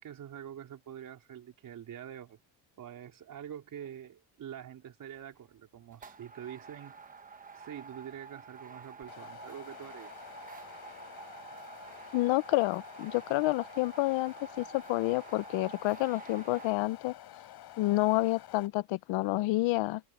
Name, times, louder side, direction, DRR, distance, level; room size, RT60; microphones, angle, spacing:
voice 1, 0.0-2.4 2.8-7.0 7.5-10.2, right 10 dB, 45° right, 4.4 m, -45 dB
sound 1, 5.1-5.4 5.9-16.7, right 5 dB, 20° right, 1.0 m, -49 dB
sound 2, 9.0-18.7, left 12 dB, 55° left, 5.8 m, -50 dB
voice 2, 12.1-17.1 17.8-20.0, left 19 dB, 90° left, 0.7 m, -29 dB
open air
cardioid pair, 170°, 44 cm